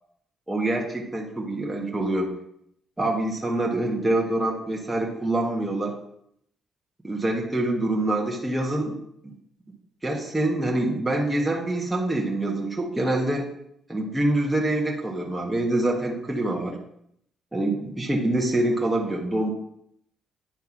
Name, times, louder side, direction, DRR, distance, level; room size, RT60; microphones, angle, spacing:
voice 1, 0.5-2.3 3.0-5.9 7.0-9.0 10.0-13.5 13.9-16.8 17.5-19.5, right 1 dB, 10° right, -1 dB, 1.5 m, -25 dB
9.7 x 3.5 x 5.9 m, 0.72 s
cardioid pair, 90°, 0 cm